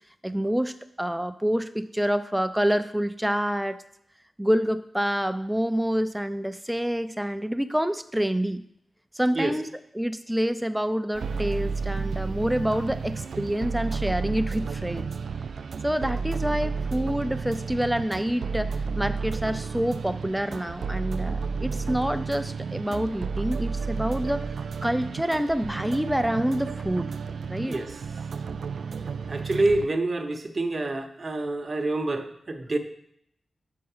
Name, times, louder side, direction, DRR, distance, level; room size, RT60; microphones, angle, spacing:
voice 1, 0.2-3.8 4.4-8.6 9.1-9.7 9.9-15.1 15.8-24.5 24.8-27.1 27.5-27.8, equal, 5° right, 11 dB, 0.6 m, -27 dB
sound 1, 11.1-29.9, right 5 dB, 80° right, 0.3 m, -32 dB
voice 2, 29.3-32.8, right 2 dB, 45° right, 5 dB, 0.9 m, -27 dB
6.4 x 5.7 x 5.6 m, 0.73 s
cardioid pair, 55°, 0 cm